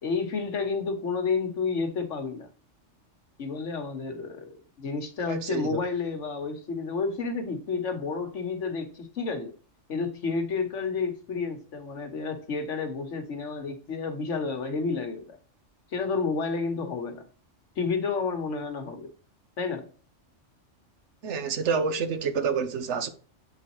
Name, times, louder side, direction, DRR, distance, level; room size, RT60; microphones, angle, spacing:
voice 1, 0.0-2.5 3.4-9.5 9.9-15.4 15.9-17.2 17.8-19.1 19.6-19.9, left 4 dB, 75° left, 1.4 m, -30 dB
voice 2, 5.3-5.8 21.2-23.1, right 5 dB, 70° right, 1.0 m, -28 dB
7.8 x 4.1 x 2.9 m
omnidirectional pair, 1.3 m